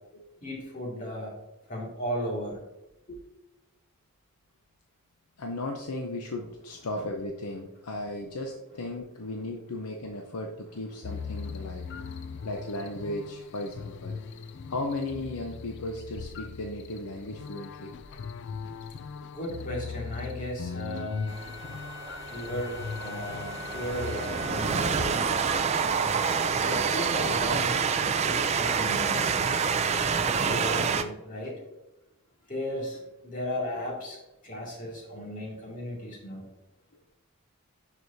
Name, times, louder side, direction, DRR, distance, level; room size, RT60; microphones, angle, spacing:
voice 1, 0.4-1.4 1.7-2.6 3.1-3.2 12.0-12.5 14.3-14.7 19.3-21.4 22.2-25.2 26.6-27.8 28.2-29.3 30.2-31.6 32.5-34.2 34.4-36.4, equal, 35° left, -3 dB, 2.2 m, -36 dB
voice 2, 5.4-12.0 12.4-14.4 14.7-18.2 18.6-18.7, left 2 dB, 90° left, 2 dB, 0.7 m, -36 dB
sound 1, 11.0-25.6, left 5 dB, 50° left, 0.3 m, -40 dB
Wind instrument woodwind instrument, 20.9-24.9, left 9 dB, 70° left, 1.1 m, -44 dB
Train, 21.3-31.0, right 6 dB, 30° right, 0.4 m, -27 dB
10.5 x 4.8 x 2.7 m, 0.97 s
head